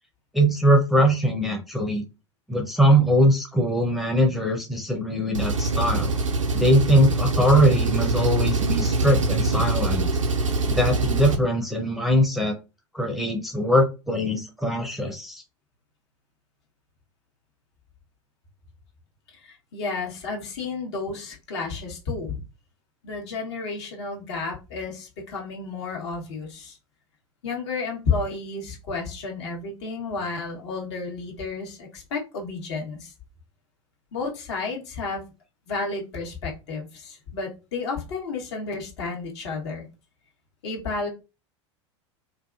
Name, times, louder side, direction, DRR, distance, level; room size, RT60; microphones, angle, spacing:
voice 1, 0.3-2.0 2.5-6.1 6.5-10.0 10.7-12.5 12.9-15.4, equal, ahead, 1 dB, 0.6 m, -21 dB
Engine, 5.3-11.4, right 2 dB, 90° right, 0.5 m, -24 dB
voice 2, 19.3-22.4 23.0-26.8 27.4-33.1 34.1-35.2 35.7-39.8 40.6-41.1, left 4 dB, 60° left, 0 dB, 1.1 m, -31 dB
2.6 x 2.4 x 2.4 m, 0.28 s
figure-of-eight pair, 85°, 16 cm